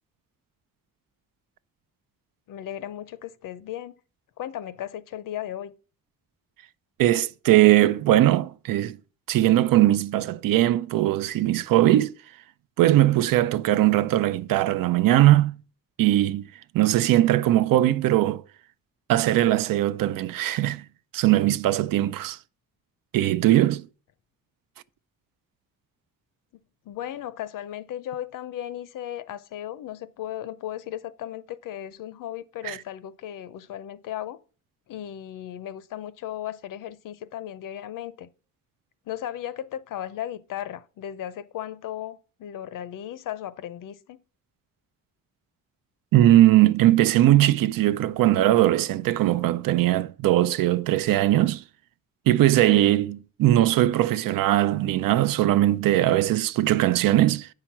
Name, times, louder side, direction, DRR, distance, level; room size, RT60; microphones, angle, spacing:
voice 1, 2.5-3.9 4.4-5.7 26.8-34.4 34.9-38.3 39.1-44.2, left 11 dB, 70° left, 0.7 m, -36 dB
voice 2, 7.0-9.0 9.3-12.1 12.8-15.6 16.0-16.5 16.7-18.4 19.1-20.8 21.1-22.4 23.1-23.9 32.6-32.8 46.1-51.6 52.3-57.5, right 14 dB, 80° right, 0.6 m, -20 dB
8.9 x 5.8 x 5.9 m
cardioid pair, 150°, 33 cm